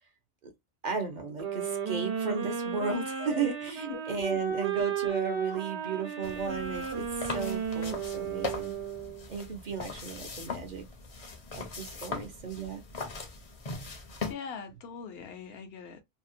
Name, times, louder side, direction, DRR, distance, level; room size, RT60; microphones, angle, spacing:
voice 1, 0.8-8.7 9.3-10.8 11.5-12.8, right 5 dB, 50° right, 0.8 m, -35 dB
sound 1, 1.4-9.4, right 6 dB, 85° right, 1.1 m, -34 dB
sound 2, 6.2-14.3, left 3 dB, 40° left, 0.6 m, -40 dB
voice 2, 14.3-16.0, left 5 dB, 70° left, 0.8 m, -41 dB
2.8 x 2.1 x 2.5 m
omnidirectional pair, 1.1 m